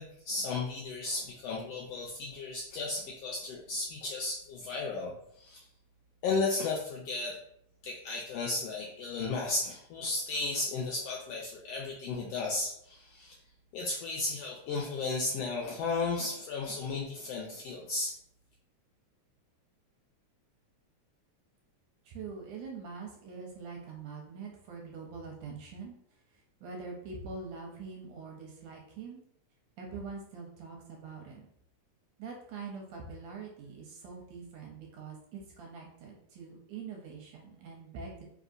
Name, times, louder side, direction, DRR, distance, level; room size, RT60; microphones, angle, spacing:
voice 1, 0.0-5.6 6.2-7.4 7.8-13.4 13.7-18.1, left 3 dB, 80° left, -2 dB, 1.4 m, -34 dB
voice 2, 22.0-25.9 26.3-29.2 29.8-31.5 32.2-38.2, right 4 dB, 75° right, 0 dB, 1.7 m, -44 dB
4.0 x 3.6 x 2.5 m, 0.72 s
omnidirectional pair, 3.4 m